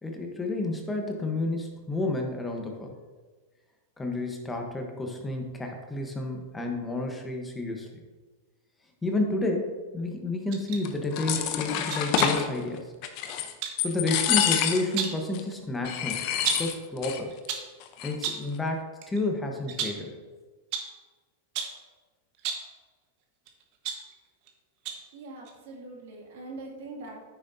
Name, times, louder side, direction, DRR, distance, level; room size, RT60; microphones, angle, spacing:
voice 1, 0.0-3.0 4.0-8.0 9.0-12.8 13.8-16.2 16.6-17.3 18.0-20.2, left 2 dB, 10° left, 2 dB, 1.1 m, -30 dB
sound 1, 10.5-10.8 11.9-12.5 13.6-13.8 14.7-15.3 16.4-16.8 17.3-17.7 18.2-18.5 19.0-19.2 19.7-20.1 20.7-21.0 21.5-21.8 22.3-22.7 23.5-24.5 24.8-25.1 25.4-25.5, right 7 dB, 50° right, 1.3 m, -33 dB
sound 2, 10.8-12.5 13.0-13.5 13.8-15.0 15.3-15.4 15.8-17.2 17.4-17.5 17.8-18.3, left 9 dB, 50° left, 0.8 m, -28 dB
voice 2, 25.1-27.2, right 2 dB, 70° right, -2 dB, 2.4 m, -42 dB
9.6 x 6.3 x 2.7 m, 1.3 s
hypercardioid pair, 120°, 0 cm